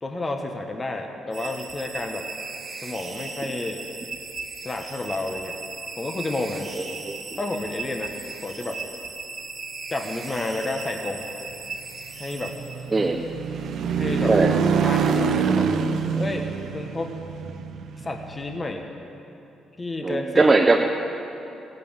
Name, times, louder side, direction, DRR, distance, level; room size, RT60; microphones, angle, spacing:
voice 1, 0.0-2.3 2.8-3.8 4.6-5.6 6.0-6.7 7.4-8.2 8.4-8.8 9.9-11.3 12.2-12.6 13.9-14.4 14.7-15.7 16.1-17.1 18.0-18.9 19.8-20.6, left 2 dB, 25° left, 3 dB, 1.3 m, -30 dB
sound 1, 1.3-13.2, right 4 dB, 40° right, 2.2 m, -37 dB
voice 2, 6.8-7.2 12.9-13.2 14.3-14.5 20.0-20.8, right 3 dB, 25° right, 1 dB, 0.9 m, -20 dB
sound 2, 11.9-18.6, right 6 dB, 70° right, 0.9 m, -25 dB
16.0 x 9.4 x 9.0 m, 2.8 s
cardioid pair, 90°, 0 cm